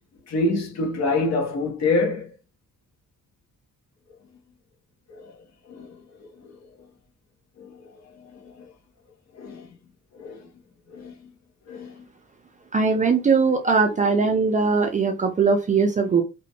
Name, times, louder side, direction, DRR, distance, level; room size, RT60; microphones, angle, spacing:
voice 1, 0.3-2.3 5.1-6.9 7.6-8.7 9.3-9.7 10.1-10.5 10.9-11.3 11.7-12.1, left 2 dB, 60° left, 1.0 m, -28 dB
voice 2, 12.7-16.2, right 4 dB, 25° right, 0.4 m, -20 dB
2.9 x 2.1 x 2.8 m
cardioid pair, 90°, 30 cm